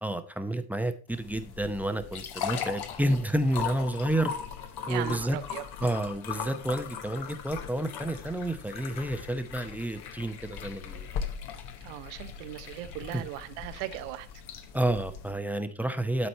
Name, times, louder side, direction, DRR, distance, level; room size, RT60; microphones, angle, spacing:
voice 1, 0.0-4.3 4.9-5.4 5.8-11.1 13.1-13.2 14.7-16.3, right 1 dB, 5° right, 0.8 m, -30 dB
sound 1, 1.1-15.3, left 8 dB, 55° left, 1.3 m, -39 dB
voice 2, 4.9-5.9 11.8-14.3, right 14 dB, 75° right, 1.0 m, -38 dB
11.5 x 4.2 x 4.2 m
supercardioid pair, 85°, 47 cm